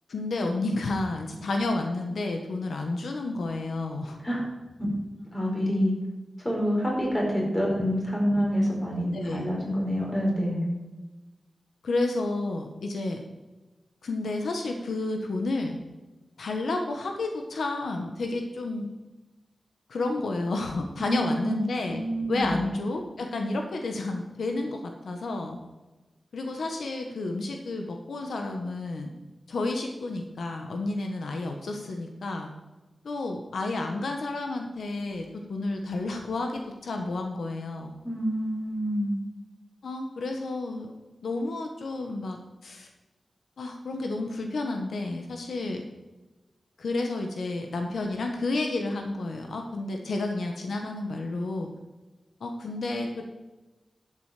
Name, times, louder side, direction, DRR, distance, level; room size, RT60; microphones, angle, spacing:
voice 1, 0.1-4.2 9.1-9.5 11.8-13.2 14.0-15.8 16.4-18.9 19.9-22.0 22.3-25.6 26.3-29.1 29.5-32.5 33.0-37.9 39.8-40.9 41.2-42.9 43.6-45.9 46.8-51.7 52.4-53.2, left 2 dB, 85° left, 3 dB, 1.5 m, -31 dB
voice 2, 5.3-5.9 6.4-10.7 21.0-21.5 21.9-22.5 38.0-39.2, equal, 20° left, -2 dB, 4.6 m, -27 dB
12.0 x 8.1 x 5.1 m, 1.1 s
wide cardioid pair, 135°, 0 cm